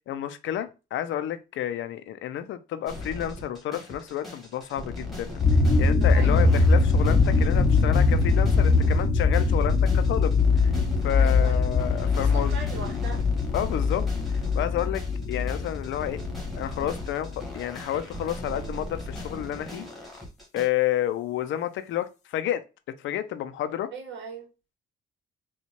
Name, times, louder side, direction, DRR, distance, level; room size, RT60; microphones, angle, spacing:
voice 1, 0.1-5.4 5.8-10.7 11.0-12.6 13.5-14.1 14.6-15.0 15.3-16.2 16.5-17.3 17.5-19.9 20.5-22.6 23.0-23.9, left 11 dB, 80° left, 0.5 m, -30 dB
sound 1, 2.9-20.7, left 1 dB, ahead, 1.5 m, -38 dB
sound 2, 5.4-17.6, left 4 dB, 35° left, 0.6 m, -22 dB
voice 2, 5.9-6.6 11.2-11.7 12.1-13.3 23.9-24.5, right 4 dB, 65° right, 1.3 m, -39 dB
4.3 x 2.4 x 2.9 m
cardioid pair, 90°, 20 cm